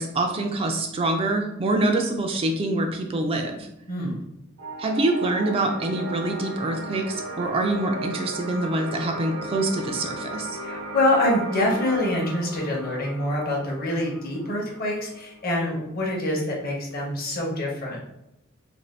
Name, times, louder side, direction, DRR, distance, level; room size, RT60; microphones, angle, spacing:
voice 1, 0.0-3.7 4.8-10.6, right 2 dB, 30° right, 3 dB, 0.3 m, -25 dB
voice 2, 3.9-4.2 10.6-18.0, left 1 dB, 45° left, -2 dB, 0.8 m, -25 dB
sound 1, 4.6-15.6, right 1 dB, 80° right, 0.7 m, -36 dB
2.6 x 2.5 x 3.2 m, 0.85 s
head